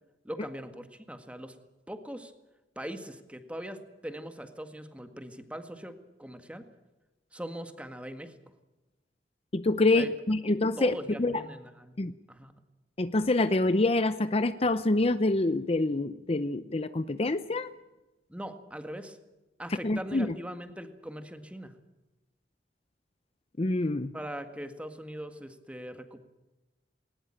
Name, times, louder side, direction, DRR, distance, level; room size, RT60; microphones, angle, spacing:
voice 1, 0.2-1.5 1.9-2.3 2.7-5.9 6.2-6.6 7.3-8.5 9.9-10.1 10.5-11.9 12.3-12.5 18.3-19.2 19.6-21.7 24.1-26.3, equal, 5° right, 8 dB, 1.8 m, -41 dB
voice 2, 9.5-10.9 11.2-11.3 12.0-12.1 13.0-17.7 19.8-20.3 23.6-24.1, left 2 dB, 35° left, 13 dB, 0.7 m, -26 dB
20.0 x 19.5 x 8.9 m, 1.1 s
head